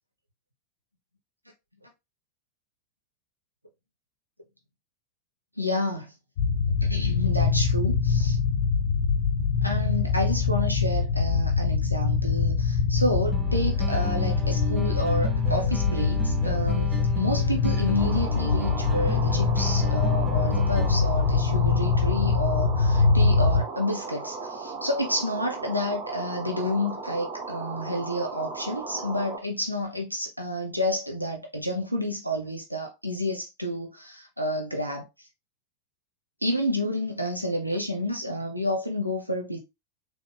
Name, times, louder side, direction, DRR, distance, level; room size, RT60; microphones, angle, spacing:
voice 1, 5.6-6.1 6.8-8.4 9.6-35.3 36.4-39.6, left 1 dB, 90° right, 0.7 m, -30 dB
sound 1, 6.4-23.6, left 5 dB, 60° left, 0.6 m, -24 dB
sound 2, 13.3-21.3, right 4 dB, 25° right, 0.7 m, -36 dB
sound 3, 18.0-29.4, right 4 dB, 40° right, 2.5 m, -37 dB
4.0 x 3.1 x 3.4 m
figure-of-eight pair, 90°, 0 cm